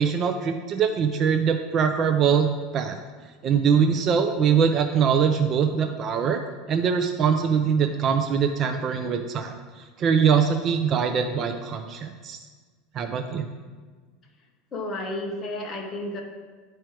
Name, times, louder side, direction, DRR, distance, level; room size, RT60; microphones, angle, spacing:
voice 1, 0.0-3.0 3.4-6.4 6.7-12.4 12.9-13.5, right 7 dB, 25° right, 6 dB, 0.4 m, -23 dB
voice 2, 14.7-16.2, left 1 dB, 20° left, 0 dB, 1.0 m, -32 dB
9.0 x 4.5 x 4.6 m, 1.4 s
supercardioid pair, 175°, 0 cm